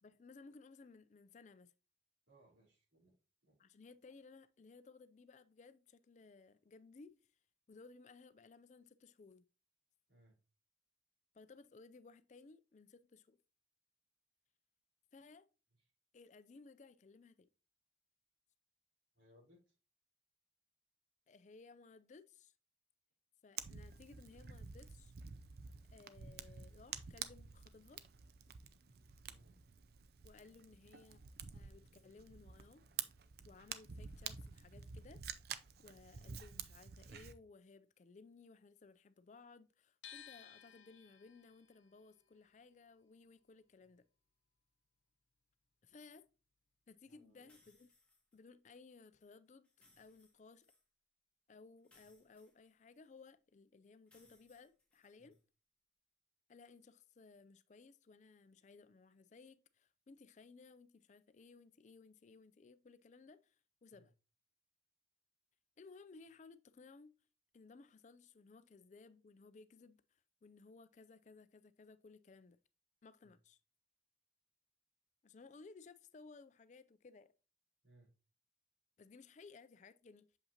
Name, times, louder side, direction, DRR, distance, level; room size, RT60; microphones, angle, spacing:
voice 1, 0.0-1.7 3.6-7.3 7.7-9.4 11.3-13.4 15.1-15.5 16.1-17.5 21.3-22.5 23.4-25.1 25.9-28.0 30.2-31.2 31.5-32.9 33.4-35.2 35.8-44.0 45.8-46.3 46.9-47.9 48.3-49.7 50.0-50.7 51.5-55.4 56.5-63.6 63.8-64.1 65.8-67.2 67.5-72.6 73.0-73.6 75.2-77.3 79.0-80.3, left 4 dB, 40° left, 0.4 m, -60 dB
voice 2, 2.3-3.1 3.4-3.5 10.1-10.4 19.1-19.7 29.2-29.6 43.8-44.0 47.1-47.6 55.2-55.4 63.9-64.1 73.2-73.3 77.8-78.1, right 1 dB, 80° right, 4.0 m, -68 dB
Fire, 23.6-37.3, right 7 dB, 55° right, 0.5 m, -49 dB
sound 1, 40.0-46.1 46.3-47.6, left 9 dB, 90° left, 0.9 m, -60 dB
sound 2, 47.5-48.4 49.6-50.8 51.8-53.2 54.1-55.4, left 3 dB, 5° left, 1.4 m, -71 dB
7.0 x 5.3 x 2.8 m
head